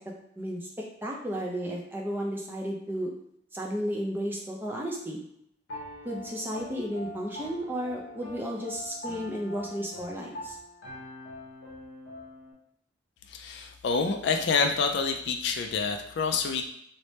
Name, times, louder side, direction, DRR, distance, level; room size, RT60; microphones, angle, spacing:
voice 1, 0.4-3.1 3.5-5.2 6.0-10.6, equal, 10° right, -1 dB, 0.5 m, -33 dB
Piano, 5.7-12.5, left 1 dB, 85° left, 0.8 m, -43 dB
voice 2, 13.3-16.6, left 5 dB, 60° left, 4 dB, 0.3 m, -27 dB
3.2 x 2.1 x 4.1 m, 0.71 s
head